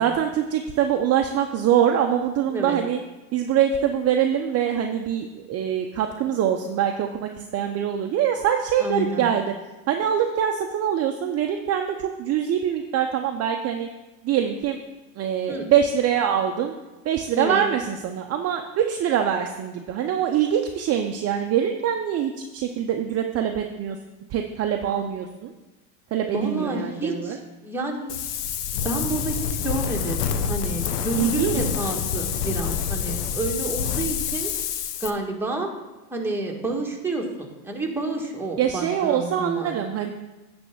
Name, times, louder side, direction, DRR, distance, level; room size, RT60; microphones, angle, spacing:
voice 1, 0.0-3.0 3.3-9.5 9.9-13.9 14.2-14.8 15.2-16.7 17.0-24.0 24.3-25.5 26.1-27.4 31.1-31.7 38.6-40.1, right 9 dB, 30° right, 4 dB, 0.7 m, -24 dB
voice 2, 8.8-9.3 15.5-15.7 17.3-17.6 26.3-28.1 28.7-34.5 35.0-35.7 36.1-39.8, right 2 dB, 5° right, -1 dB, 1.5 m, -29 dB
Wind, 28.1-35.1, left 7 dB, 80° left, 0.8 m, -27 dB
9.7 x 3.5 x 6.8 m, 1.1 s
hypercardioid pair, 90°, 46 cm